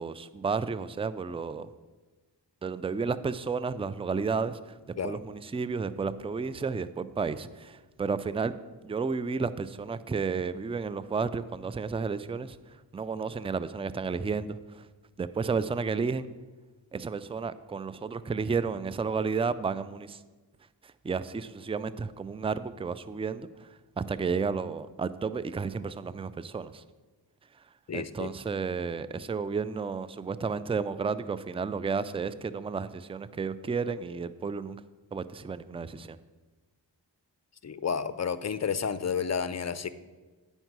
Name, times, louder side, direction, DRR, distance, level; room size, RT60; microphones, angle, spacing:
voice 1, 0.0-1.7 2.6-4.8 5.0-8.5 8.8-12.6 12.9-14.9 15.2-16.3 16.9-20.2 20.8-23.7 24.0-26.8 27.9-34.8 35.1-36.2, right 5 dB, 15° right, 15 dB, 0.3 m, -32 dB
voice 2, 27.9-28.3 37.6-39.9, left 6 dB, 35° left, 14 dB, 0.5 m, -31 dB
9.2 x 5.5 x 6.0 m, 1.3 s
cardioid pair, 45°, 45 cm